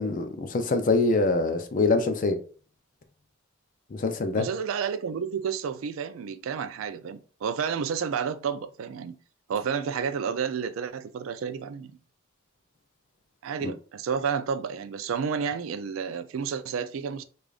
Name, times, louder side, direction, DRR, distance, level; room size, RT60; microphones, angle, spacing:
voice 1, 0.0-2.4 3.9-4.5 13.6-13.7, left 3 dB, 40° left, 0.4 m, -24 dB
voice 2, 4.4-9.2 9.5-11.9 13.4-17.2, right 6 dB, 80° right, 0.3 m, -31 dB
4.9 x 2.4 x 2.4 m
head